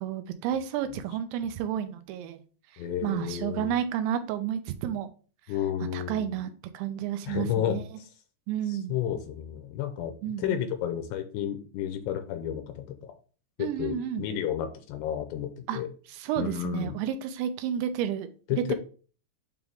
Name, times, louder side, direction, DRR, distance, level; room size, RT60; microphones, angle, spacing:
voice 1, 0.0-2.4 3.0-5.1 5.8-7.8 8.5-8.9 10.2-10.7 13.6-14.3 15.7-15.8 16.1-18.3 18.7-18.8, right 10 dB, 85° right, 9 dB, 3.0 m, -31 dB
voice 2, 2.8-3.7 5.5-6.4 7.2-8.1 8.7-13.2 13.6-15.9 16.4-17.0 18.5-18.7, left 10 dB, 80° left, 8 dB, 2.7 m, -32 dB
8.9 x 3.5 x 3.5 m, 0.38 s
omnidirectional pair, 5.1 m